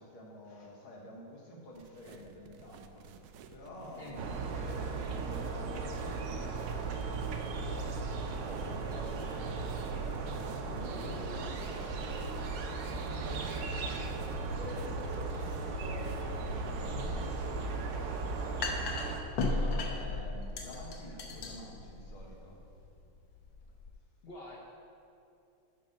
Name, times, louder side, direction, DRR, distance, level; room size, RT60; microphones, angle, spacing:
voice 1, 0.0-3.1 3.5-7.9 8.3-12.3 14.5-18.7 19.7-22.6, left 1 dB, 85° left, -3 dB, 2.3 m, -49 dB
sound 1, 1.7-17.1, right 5 dB, 85° right, 1.4 m, -50 dB
voice 2, 4.0-4.4 10.7-11.4 13.3-14.0 15.3-15.5 19.4-19.8 24.2-24.6, left 2 dB, 55° left, -2 dB, 0.7 m, -47 dB
sound 2, 4.2-19.2, right 3 dB, 65° right, 1.0 m, -37 dB
sound 3, 16.1-23.9, left 2 dB, 70° left, 1.6 m, -37 dB
9.3 x 5.4 x 5.3 m, 2.6 s
omnidirectional pair, 2.2 m